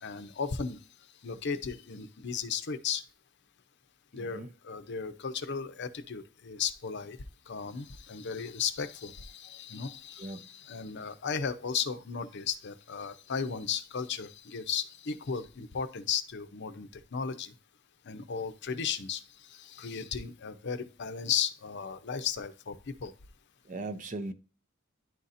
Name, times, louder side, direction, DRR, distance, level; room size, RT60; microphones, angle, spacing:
voice 1, 0.0-0.8 1.2-3.0 4.1-7.2 7.5-17.5 18.1-19.2 19.5-23.1, left 6 dB, 55° left, 0.6 m, -35 dB
voice 2, 4.2-4.5 10.2-10.5 23.6-24.3, right 2 dB, 40° right, 0.6 m, -38 dB
11.0 x 4.1 x 2.5 m
head